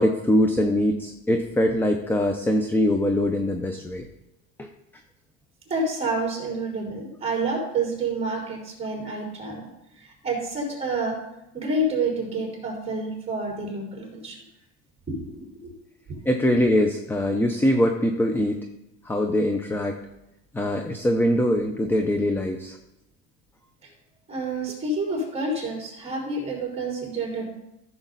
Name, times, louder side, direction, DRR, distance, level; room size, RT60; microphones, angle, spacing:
voice 1, 0.0-4.0 4.6-4.7 16.3-18.7 19.0-20.0 20.5-22.8, left 1 dB, 5° left, 5 dB, 0.6 m, -22 dB
voice 2, 5.7-9.6 10.0-11.2 11.5-14.4 15.1-15.7 24.3-27.4, right 2 dB, 20° right, -2 dB, 4.1 m, -28 dB
14.0 x 7.1 x 4.0 m, 0.88 s
cardioid pair, 145°, 31 cm